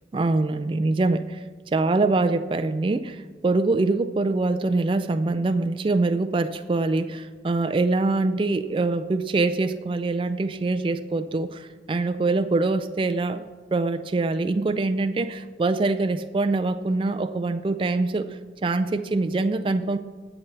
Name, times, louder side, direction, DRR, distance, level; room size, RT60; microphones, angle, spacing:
voice 1, 0.1-1.4 1.7-20.0, right 3 dB, 30° right, 9 dB, 0.3 m, -24 dB
20.0 x 7.0 x 3.3 m, 1.5 s
head